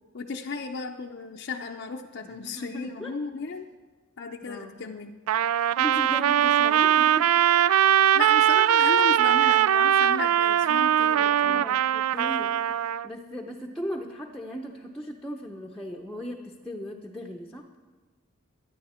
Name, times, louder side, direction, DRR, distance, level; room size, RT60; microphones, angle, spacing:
voice 1, 0.1-3.7 4.2-5.1 8.1-11.7, left 4 dB, 55° left, 1 dB, 0.6 m, -34 dB
voice 2, 2.2-3.2 3.5-3.6 4.4-4.8 5.8-7.3 11.1-12.5 13.0-17.6, equal, ahead, 0 dB, 0.7 m, -37 dB
Trumpet, 5.3-13.1, right 10 dB, 85° right, 0.3 m, -21 dB
22.5 x 9.8 x 4.3 m, 1.3 s
head